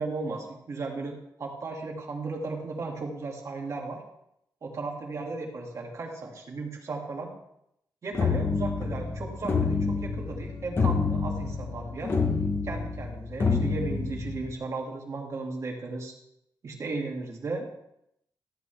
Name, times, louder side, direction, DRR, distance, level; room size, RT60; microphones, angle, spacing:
voice 1, 0.0-4.0 4.6-7.3 8.0-12.2 12.6-16.1 16.6-17.8, right 3 dB, 45° right, 0 dB, 2.2 m, -35 dB
sound 1, 8.1-14.5, left 4 dB, 35° left, 1.0 m, -28 dB
14.0 x 8.3 x 3.4 m, 0.77 s
wide cardioid pair, 140°, 7 cm